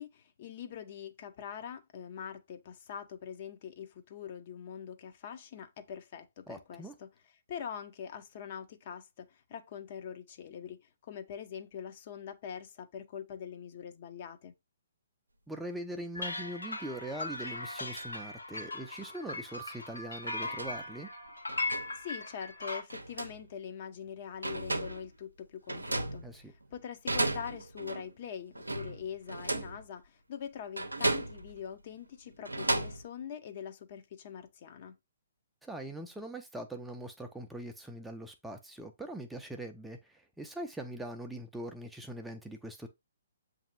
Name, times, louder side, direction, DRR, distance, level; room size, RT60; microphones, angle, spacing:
voice 1, 0.0-7.1 7.5-14.5 21.6-26.4 26.7-34.9, left 8 dB, 45° left, 0.6 m, -43 dB
voice 2, 6.5-6.9 15.5-21.1 26.2-26.5 35.6-42.9, right 1 dB, 5° right, 0.4 m, -42 dB
sound 1, 16.1-22.8, left 2 dB, 80° left, 1.0 m, -38 dB
sound 2, 17.1-17.2 17.6-18.1 18.9-19.0 20.2-20.8 21.5-21.9 22.9-23.4 24.1-24.2 24.4-25.1 25.7-26.6 27.1-28.1 28.5-29.8 30.8-31.6 32.3-33.0, right 2 dB, 85° right, 0.5 m, -35 dB
7.1 x 2.7 x 2.5 m
figure-of-eight pair, 130°, 0 cm